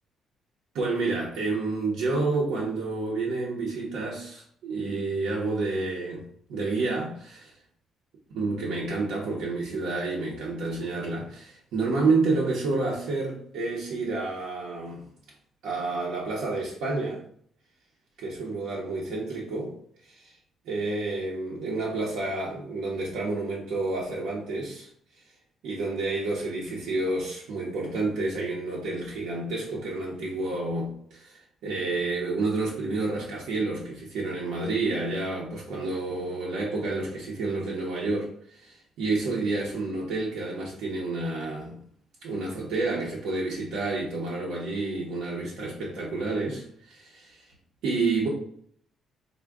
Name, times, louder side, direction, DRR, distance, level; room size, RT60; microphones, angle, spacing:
voice 1, 0.7-7.5 8.3-15.0 15.6-17.2 18.2-19.8 20.0-20.3 20.6-24.9 25.6-41.8 42.2-47.5 47.8-48.3, right 3 dB, 75° right, -3 dB, 0.7 m, -29 dB
3.5 x 2.2 x 3.4 m, 0.62 s
cardioid pair, 170°, 0 cm